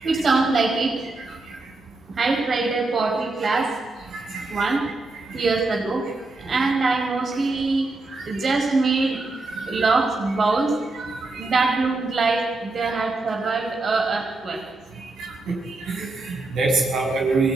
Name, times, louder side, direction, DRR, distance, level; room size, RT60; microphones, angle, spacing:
voice 1, 0.0-1.0 2.1-3.8 4.5-4.8 5.3-6.1 6.4-7.9 8.3-9.2 9.7-10.8 11.3-14.6, right 3 dB, 45° right, 0 dB, 5.1 m, -22 dB
voice 2, 4.1-4.7 5.5-5.6 6.6-6.7 8.1-8.3 9.4-9.9 10.9-11.5 12.8-12.9 14.9-17.5, right 3 dB, 75° right, -1 dB, 6.6 m, -27 dB
23.5 x 18.0 x 9.6 m, 1.3 s
cardioid pair, 90°, 0 cm